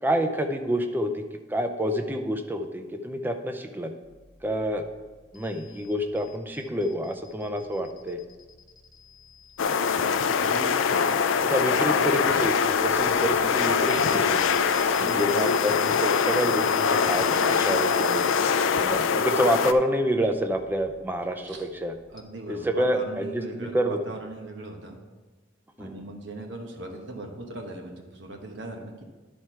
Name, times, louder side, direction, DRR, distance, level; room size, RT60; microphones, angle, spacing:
voice 1, 0.0-1.2 1.5-3.9 4.4-4.8 5.3-8.2 11.5-14.6 15.0-18.2 18.8-21.9 22.5-24.0 25.8-26.1, equal, 10° right, 6 dB, 0.5 m, -28 dB
sound 1, 4.0-22.2, left 7 dB, 25° left, 0.9 m, -47 dB
sound 2, 9.6-19.7, left 6 dB, 85° left, 0.4 m, -23 dB
voice 2, 10.4-10.8 11.8-12.1 14.8-15.3 17.5-18.1 21.4-21.6 22.1-25.0 25.8-29.0, right 2 dB, 70° right, 3 dB, 1.1 m, -39 dB
11.0 x 4.4 x 4.6 m, 1.3 s
head